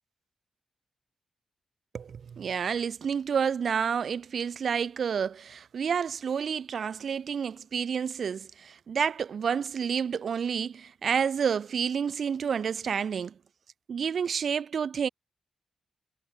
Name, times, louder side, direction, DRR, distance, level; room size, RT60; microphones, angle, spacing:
voice 1, 1.9-13.3 13.9-15.1, right 7 dB, 65° right, 3.0 m, -29 dB
wide cardioid pair, 135°, 0 cm